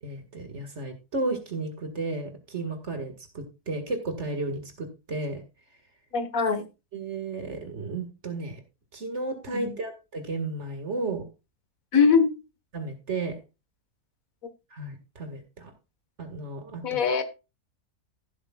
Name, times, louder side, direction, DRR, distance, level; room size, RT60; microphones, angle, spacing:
voice 1, 0.0-5.4 6.9-8.6 8.9-11.2 12.7-13.4 14.7-15.7 16.2-16.8, right 2 dB, 50° right, 2.1 m, -33 dB
voice 2, 6.1-6.7 9.5-9.8 11.9-12.3 16.8-17.2, left 5 dB, 65° left, 1.8 m, -22 dB
15.5 x 8.0 x 2.4 m
omnidirectional pair, 1.6 m